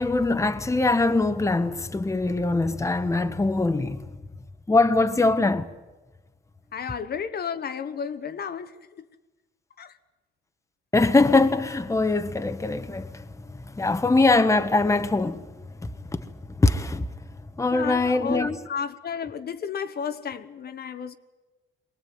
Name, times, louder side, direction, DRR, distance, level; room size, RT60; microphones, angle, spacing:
voice 1, 0.0-4.0 4.7-5.7 10.9-15.5 15.8-16.3 16.6-17.1 17.6-18.6, left 3 dB, 15° left, 1.1 m, -22 dB
voice 2, 6.7-9.0 9.8-10.0 17.7-21.1, left 7 dB, 55° left, 1.1 m, -32 dB
23.0 x 18.5 x 9.3 m
cardioid pair, 90°, 20 cm